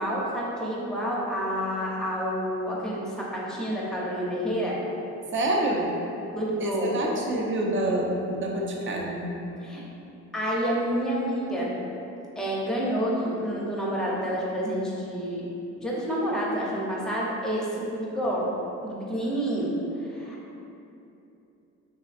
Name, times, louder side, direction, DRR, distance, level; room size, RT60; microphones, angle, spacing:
voice 1, 0.0-4.8 6.3-6.9 9.6-9.8 10.3-11.7 12.4-15.5 15.8-18.5 18.8-19.7 20.0-20.6, equal, ahead, -5 dB, 0.6 m, -29 dB
voice 2, 5.3-5.9 6.6-9.4, right 1 dB, 40° right, -1 dB, 0.5 m, -27 dB
3.3 x 2.6 x 2.4 m, 2.9 s
cardioid pair, 90°, 30 cm